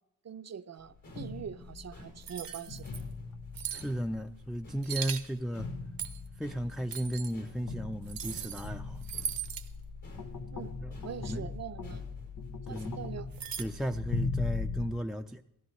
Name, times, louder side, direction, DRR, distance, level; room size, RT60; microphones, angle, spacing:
voice 1, 0.2-2.9 10.5-10.7 11.0-12.0 12.7-13.3, right 7 dB, 50° right, 14 dB, 0.6 m, -43 dB
sound 1, 0.8-14.9, left 4 dB, 85° left, 1.1 m, -40 dB
sound 2, 0.8-0.9 1.0-5.3 5.5-7.1 7.3-13.7, left 2 dB, 70° left, 5.6 m, -52 dB
sound 3, 2.2-3.0 3.5-3.9 4.8-5.3 6.0-6.3 6.9-7.3 8.1-8.7 9.0-9.7 13.3-13.6, right 8 dB, 80° right, 0.9 m, -38 dB
voice 2, 3.7-5.7 6.4-9.0 10.8-11.5 12.7-13.0 13.6-15.4, equal, ahead, 4 dB, 0.4 m, -35 dB
17.5 x 15.5 x 3.2 m, 0.86 s
cardioid pair, 65°, 34 cm